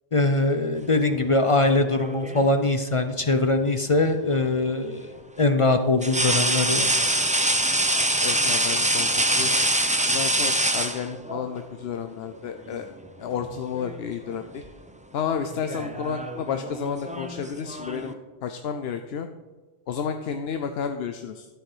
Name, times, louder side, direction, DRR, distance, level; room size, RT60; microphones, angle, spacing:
voice 1, 0.1-5.1 5.4-6.9, left 2 dB, 40° left, 8 dB, 0.5 m, -22 dB
sound 1, 1.7-2.6 4.3-4.5 6.0-11.5 12.7-12.9 13.3-14.0 14.3-14.7 15.5-18.1, right 1 dB, 10° right, 0.5 m, -25 dB
voice 2, 8.2-9.6 10.1-12.9 13.2-14.6 15.1-19.3 19.9-21.5, left 7 dB, 65° left, 7 dB, 0.8 m, -31 dB
12.5 x 7.8 x 5.0 m, 1.3 s
omnidirectional pair, 1.2 m